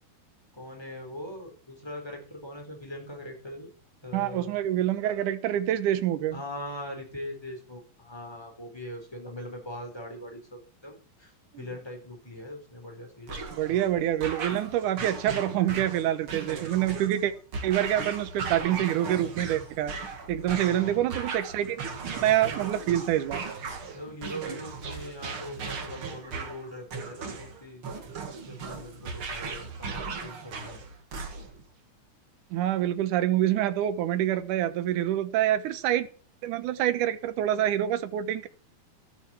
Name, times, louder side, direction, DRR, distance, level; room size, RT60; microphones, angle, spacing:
voice 1, 0.5-3.7 4.0-4.6 6.3-13.7 20.5-21.1 23.9-27.8 28.4-30.8, left 1 dB, 5° left, 3.9 m, -41 dB
voice 2, 4.1-6.4 11.5-11.6 13.5-17.3 17.6-19.9 20.3-23.4 32.5-36.1 36.4-38.5, right 12 dB, 70° right, 2.2 m, -26 dB
sound 1, 13.3-31.7, right 4 dB, 40° right, 2.4 m, -37 dB
14.5 x 13.0 x 4.5 m
omnidirectional pair, 4.4 m